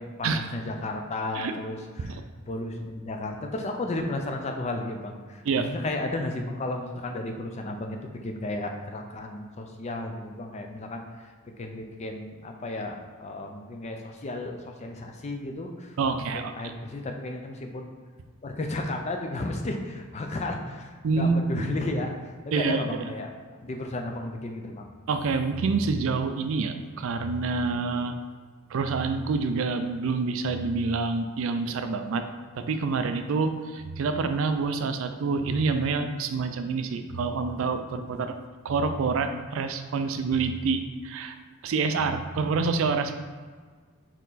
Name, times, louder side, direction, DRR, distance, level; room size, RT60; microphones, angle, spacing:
voice 1, 0.0-2.2 2.5-11.3 11.6-17.9 18.4-23.3 23.6-24.9, left 2 dB, 30° left, 3 dB, 0.4 m, -33 dB
voice 2, 16.0-16.5 21.0-21.7 22.5-22.8 25.1-28.1 28.7-32.2 32.5-38.3 38.6-41.4 41.6-43.1, right 4 dB, 65° right, 8 dB, 0.4 m, -27 dB
4.4 x 3.0 x 4.0 m, 1.5 s
head